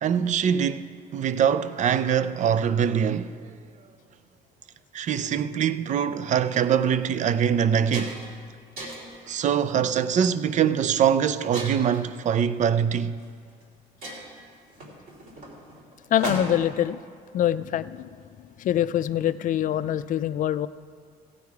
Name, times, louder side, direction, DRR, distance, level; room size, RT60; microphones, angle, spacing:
voice 1, 0.0-3.3 4.9-8.2 9.3-13.2, right 8 dB, 45° right, 0.5 m, -23 dB
sound 1, 6.5-6.6 7.2-7.3 7.6-8.4 8.8-9.2 9.9-10.2 11.5-12.1 13.2-13.3 13.6-13.7 14.0-16.8, right 1 dB, 65° right, 3.1 m, -36 dB
voice 2, 16.1-17.0 17.3-18.1 18.6-20.7, left 11 dB, 50° left, 0.4 m, -24 dB
15.5 x 8.5 x 4.7 m
cardioid pair, 110°, 17 cm